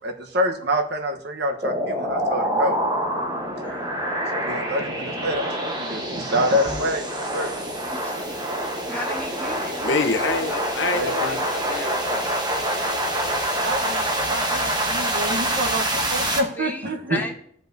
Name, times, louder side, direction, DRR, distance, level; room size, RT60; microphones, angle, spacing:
voice 1, 0.0-2.8 4.3-7.5 10.9-11.4 13.6-17.3, equal, 60° right, 4 dB, 1.0 m, -27 dB
sound 1, 1.6-16.4, right 1 dB, 20° right, 1.1 m, -26 dB
sound 2, 6.6-11.0, left 1 dB, 40° right, 3.1 m, -46 dB
voice 2, 7.9-8.5 8.9-9.8 16.6-17.3, left 1 dB, 10° left, 2 dB, 1.0 m, -34 dB
voice 3, 9.8-12.3 13.4-13.6, left 3 dB, 70° left, 7 dB, 0.8 m, -27 dB
15.0 x 5.3 x 2.7 m, 0.67 s
head